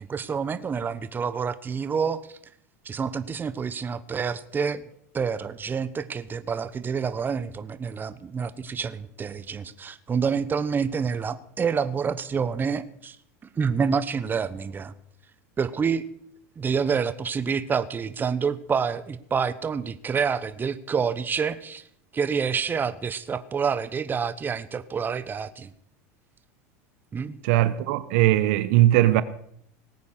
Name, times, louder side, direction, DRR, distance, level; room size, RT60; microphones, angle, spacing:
voice 1, 0.0-2.4 2.8-4.8 5.1-13.2 13.6-14.9 15.6-16.1 16.6-21.8 22.1-25.7 27.1-27.4, right 6 dB, 25° right, 1.0 m, -28 dB
voice 2, 27.4-29.2, right 15 dB, 65° right, 0.9 m, -19 dB
19.0 x 8.5 x 6.6 m
hypercardioid pair, 100°, 8 cm